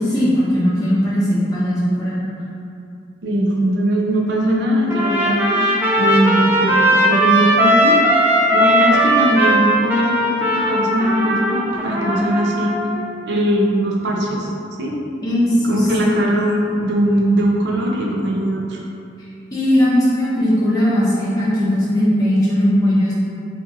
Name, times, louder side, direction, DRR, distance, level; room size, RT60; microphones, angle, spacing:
voice 1, 0.1-2.2 15.2-15.9 19.5-23.1, equal, 20° left, -11 dB, 0.7 m, -18 dB
voice 2, 3.2-8.0 8.5-12.8 13.3-14.5 14.8-15.0 15.7-18.8, right 1 dB, 65° right, -2 dB, 0.5 m, -20 dB
Trumpet, 4.9-13.0, right 1 dB, 10° right, 0.4 m, -17 dB
2.8 x 2.4 x 3.8 m, 2.7 s
head